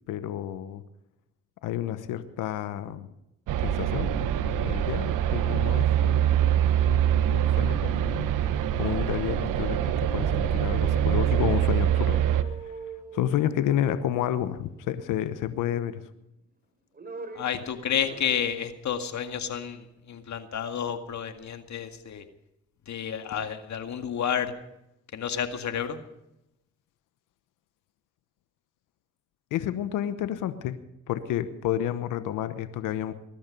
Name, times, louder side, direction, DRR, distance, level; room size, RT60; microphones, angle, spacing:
voice 1, 0.1-0.8 1.6-3.1 3.6-4.1 4.4-8.3 8.8-12.7 13.1-16.0 29.5-30.8 31.1-33.2, left 11 dB, 80° left, 12 dB, 1.1 m, -30 dB
sound 1, 3.5-12.4, right 10 dB, 80° right, 1.1 m, -24 dB
sound 2, 12.0-14.6 15.8-16.4 16.7-17.6 17.9-18.5 18.8-18.9, right 4 dB, 30° right, 3.4 m, -43 dB
voice 2, 17.4-22.3 22.9-24.5 25.1-26.0, left 8 dB, 60° left, 7 dB, 2.0 m, -30 dB
21.0 x 12.0 x 5.4 m, 0.84 s
supercardioid pair, 55°, 31 cm